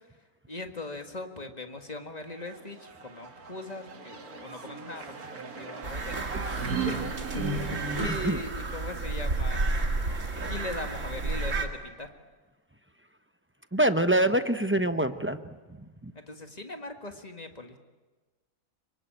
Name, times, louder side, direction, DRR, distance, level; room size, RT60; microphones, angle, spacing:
voice 1, 0.5-9.7 10.4-12.1 16.2-17.8, left 2 dB, 25° left, 5 dB, 1.9 m, -40 dB
sound 1, 2.4-8.1, right 4 dB, 80° right, 2.3 m, -36 dB
sound 2, 5.8-11.7, right 3 dB, 55° right, 2.5 m, -31 dB
voice 2, 8.1-8.4 13.7-15.4 16.0-16.1, right 1 dB, 10° right, 9 dB, 0.7 m, -25 dB
26.5 x 24.0 x 9.0 m, 1.3 s
omnidirectional pair, 1.5 m